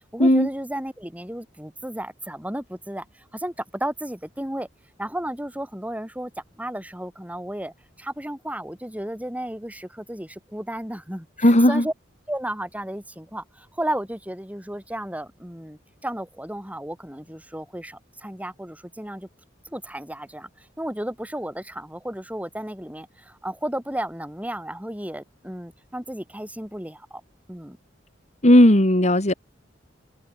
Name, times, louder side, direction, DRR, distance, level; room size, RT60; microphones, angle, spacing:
voice 1, 0.1-4.7 5.0-11.9 12.3-19.3 19.6-27.2 27.5-27.8, right 1 dB, 10° right, 7.4 m, -33 dB
voice 2, 11.4-11.9 28.4-29.3, left 1 dB, 40° left, 3.0 m, -15 dB
head